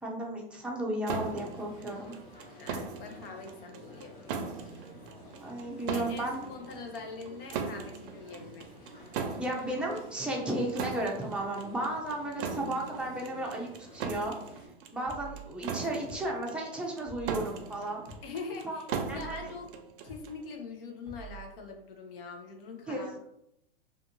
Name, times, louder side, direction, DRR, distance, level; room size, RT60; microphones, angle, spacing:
voice 1, 0.0-2.1 5.4-6.4 9.4-14.3 14.9-18.0 18.6-18.8 19.1-19.4 22.9-23.2, right 1 dB, 5° right, -2 dB, 0.5 m, -34 dB
sound 1, 1.1-20.4, right 5 dB, 60° right, 0.5 m, -39 dB
sound 2, 1.2-14.7, left 1 dB, 45° left, 1.2 m, -52 dB
voice 2, 2.6-4.4 5.9-8.7 18.2-18.9 19.1-19.7 20.0-23.2, left 4 dB, 65° left, 3 dB, 0.8 m, -43 dB
sound 3, 14.1-14.3 15.1-15.4 16.1-16.3 17.1-17.4 18.1-18.3 19.1-19.4 20.1-20.3 21.1-21.4, right 4 dB, 15° left, 1.0 m, -46 dB
2.5 x 2.5 x 2.8 m, 0.78 s
hypercardioid pair, 125°, 31 cm